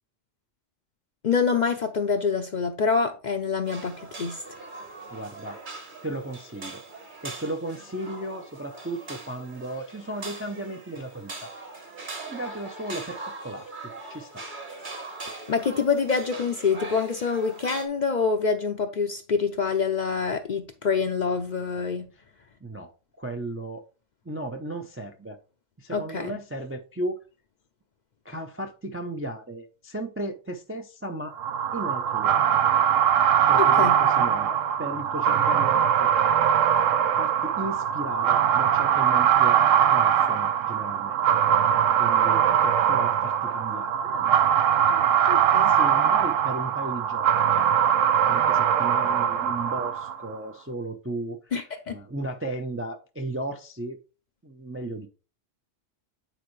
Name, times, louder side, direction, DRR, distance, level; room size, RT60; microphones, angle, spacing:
voice 1, 1.2-4.4 15.5-22.1 25.9-26.4 33.6-34.0 45.3-45.7 51.5-52.0, left 5 dB, 50° left, 0.6 m, -26 dB
sound 1, 3.7-17.9, right 3 dB, 40° right, 1.3 m, -41 dB
voice 2, 5.1-5.6 6.0-6.8 7.2-11.5 12.3-13.7 14.1-14.4 22.6-23.8 24.2-25.4 25.8-27.2 28.2-31.4 31.7-32.4 33.5-36.1 37.2-41.4 42.0-44.4 44.9-45.1 45.7-47.6 48.3-51.5 51.9-54.0 54.4-55.1, right 1 dB, 20° right, 0.3 m, -35 dB
sound 2, 31.4-50.3, right 9 dB, 90° right, 1.0 m, -21 dB
9.1 x 4.3 x 3.1 m
omnidirectional pair, 1.3 m